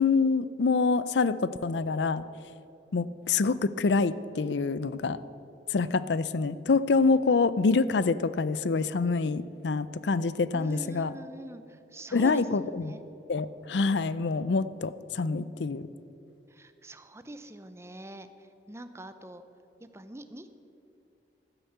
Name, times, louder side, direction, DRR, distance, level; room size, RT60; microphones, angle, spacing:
voice 1, 0.0-2.2 2.9-5.2 5.7-11.1 12.1-13.0 13.3-15.9, left 4 dB, 80° left, 16 dB, 0.5 m, -26 dB
voice 2, 10.5-13.0 16.5-18.3 18.7-19.4 19.8-20.6, right 1 dB, 15° right, 10 dB, 0.7 m, -44 dB
12.5 x 10.0 x 8.0 m, 2.9 s
head